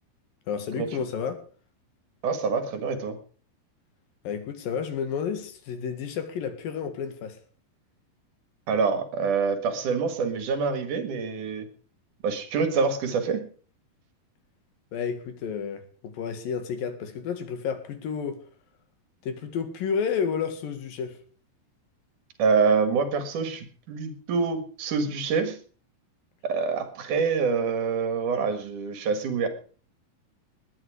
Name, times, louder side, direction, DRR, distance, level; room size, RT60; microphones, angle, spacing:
voice 1, 0.5-1.4 4.3-7.4 14.9-18.4 19.2-21.2, left 6 dB, 65° left, 3.5 m, -31 dB
voice 2, 2.2-3.2 8.7-11.7 12.2-13.5 22.4-25.6 26.4-29.5, right 5 dB, 60° right, 2.9 m, -26 dB
19.5 x 10.0 x 4.9 m
omnidirectional pair, 4.6 m